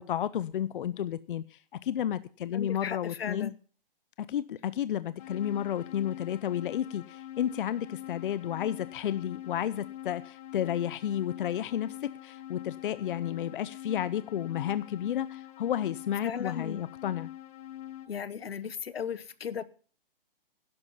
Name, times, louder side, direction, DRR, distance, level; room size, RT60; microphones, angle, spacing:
voice 1, 0.0-3.5 4.3-12.0 12.2-17.3, left 10 dB, 60° left, 0.7 m, -32 dB
voice 2, 2.5-3.6 16.2-16.8 18.1-19.6, left 7 dB, 90° left, 1.1 m, -36 dB
sound 1, 5.2-18.1, left 12 dB, 40° left, 1.6 m, -44 dB
11.5 x 11.0 x 5.6 m
hypercardioid pair, 150°, 29 cm